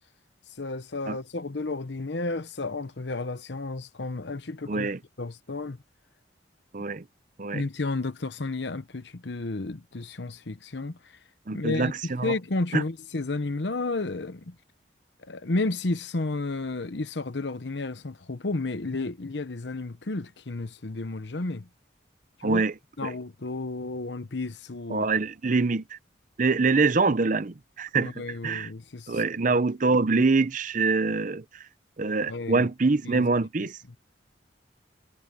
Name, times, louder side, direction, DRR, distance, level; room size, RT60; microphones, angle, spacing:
voice 1, 0.5-4.9 5.2-5.8 7.5-11.2 11.5-14.5 15.2-21.7 22.4-22.6 23.0-25.1 28.0-29.2 29.5-29.6 32.3-32.7 33.0-33.3 33.9-34.0, left 2 dB, 65° left, 1.0 m, -32 dB
voice 2, 4.7-5.0 6.7-7.0 7.4-7.6 11.5-12.3 12.7-12.8 22.4-22.7 23.0-23.1 24.9-26.0 26.4-28.7 29.1-31.6 32.0-33.8, right 3 dB, 45° right, 0.7 m, -25 dB
head